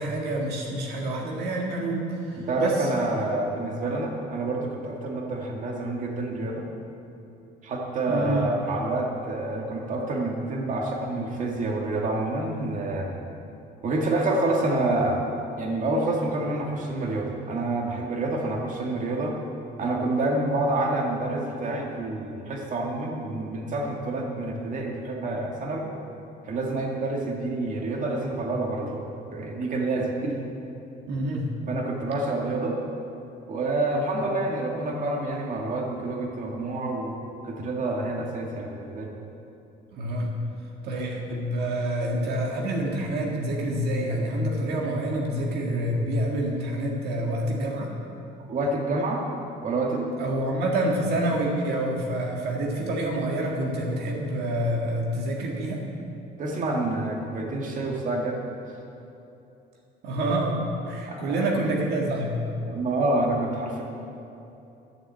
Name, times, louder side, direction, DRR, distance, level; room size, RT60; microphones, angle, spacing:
voice 1, 0.0-2.9 8.1-8.5 31.1-31.5 34.2-34.4 39.9-40.4 40.8-47.9 50.2-55.8 60.0-62.4, right 1 dB, 75° right, -1 dB, 1.8 m, -27 dB
voice 2, 2.4-6.7 7.6-13.2 13.8-15.3 15.6-19.4 19.8-25.9 26.4-29.1 29.3-30.4 31.7-32.8 33.5-37.1 37.4-39.1 48.5-49.2 49.6-50.4 56.4-58.4 58.7-58.8 61.1-61.4 62.6-63.8, right 2 dB, 50° right, 0 dB, 2.1 m, -28 dB
13.0 x 7.4 x 7.8 m, 2.8 s
cardioid pair, 110°, 17 cm